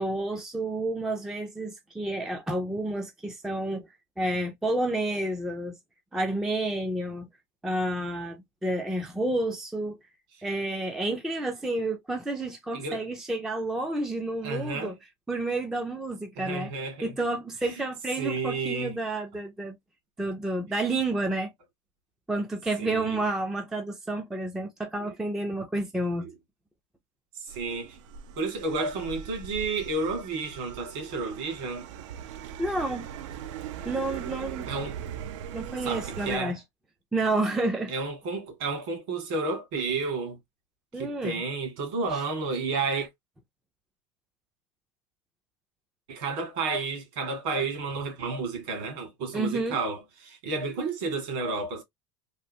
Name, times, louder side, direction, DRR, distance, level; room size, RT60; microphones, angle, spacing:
voice 1, 0.0-3.9 4.2-5.8 6.1-7.3 7.6-10.0 10.4-14.9 15.3-16.7 17.0-19.8 20.2-21.5 22.3-26.3 32.6-33.1 33.9-34.7 35.5-36.6 37.1-37.9 40.9-41.4 49.3-49.8, right 2 dB, 5° right, 0.3 m, -30 dB
voice 2, 14.4-14.9 16.4-17.2 17.7-17.8 18.2-19.0 22.8-23.2 25.0-25.1 26.2-26.3 27.4-28.0 28.4-31.9 34.7-35.0 35.8-36.6 37.9-40.4 40.9-43.1 46.1-51.8, right 3 dB, 55° right, 1.6 m, -31 dB
sound 1, 27.5-36.4, right 9 dB, 75° right, 0.4 m, -40 dB
3.2 x 2.4 x 2.6 m
supercardioid pair, 170°, 16 cm